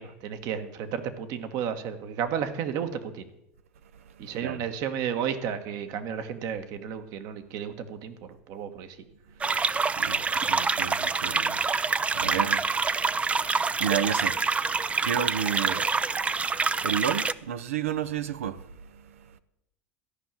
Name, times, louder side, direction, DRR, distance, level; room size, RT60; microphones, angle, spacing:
voice 1, 0.0-3.3 4.2-8.1 8.5-9.0 10.4-10.5, right 8 dB, 55° right, 1.4 m, -32 dB
voice 2, 3.9-4.6 9.4-9.5 9.9-19.4, right 9 dB, 80° right, 0.7 m, -33 dB
sound 1, 9.4-17.3, right 4 dB, 15° right, 0.4 m, -26 dB
13.5 x 5.7 x 9.1 m
hypercardioid pair, 90°, 7 cm